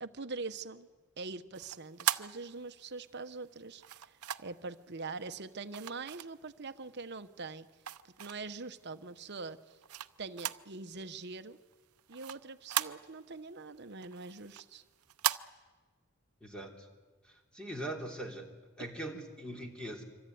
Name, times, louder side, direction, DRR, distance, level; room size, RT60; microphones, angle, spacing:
voice 1, 0.0-0.9 1.2-7.7 8.0-9.8 10.2-11.6 12.1-14.8 19.1-19.2, right 3 dB, 50° right, 10 dB, 1.1 m, -43 dB
sound 1, 1.5-3.0 3.8-4.7 5.7-6.8 7.2-8.6 9.1-10.8 11.0-11.1 11.5-13.4 13.8-15.4, right 11 dB, 80° right, 0.8 m, -37 dB
voice 2, 16.4-16.9 17.2-18.5 18.8-20.0, right 1 dB, 5° left, 1 dB, 3.2 m, -41 dB
25.5 x 25.0 x 9.4 m, 1.4 s
head